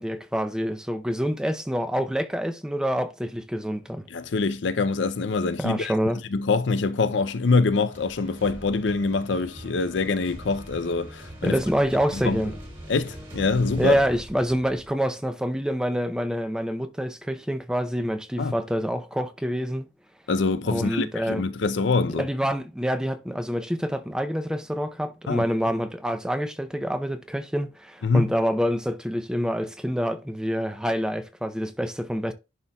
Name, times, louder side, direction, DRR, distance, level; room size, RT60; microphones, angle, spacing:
voice 1, 0.0-4.1 5.6-6.2 11.4-12.5 13.8-19.9 20.7-21.4 22.1-32.3, equal, 5° right, 0.5 m, -27 dB
voice 2, 4.1-5.9 6.3-11.6 12.1-12.4 12.9-14.0 18.4-18.5 20.3-22.3 25.3-25.5 28.0-28.3, left 4 dB, 75° left, 0.5 m, -24 dB
sound 1, 7.9-14.9, equal, 25° right, 2.1 m, -41 dB
11.0 x 4.3 x 2.3 m
head